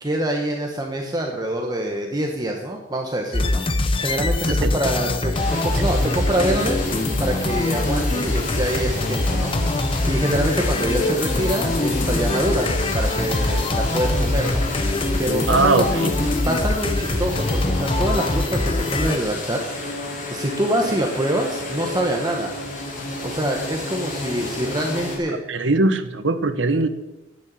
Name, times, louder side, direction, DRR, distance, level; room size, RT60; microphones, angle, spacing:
voice 1, 0.0-3.6 4.0-6.8 7.2-9.5 10.1-14.6 15.2-15.9 16.5-19.7 20.3-22.5 23.2-25.4, right 1 dB, 20° right, 1.2 m, -25 dB
sound 1, 3.3-19.2, left 2 dB, 30° left, 0.8 m, -23 dB
sound 2, 5.3-25.2, left 2 dB, 45° left, 4.6 m, -31 dB
voice 2, 15.5-16.1 25.5-26.9, right 2 dB, 80° right, 1.2 m, -20 dB
12.5 x 9.8 x 7.7 m
head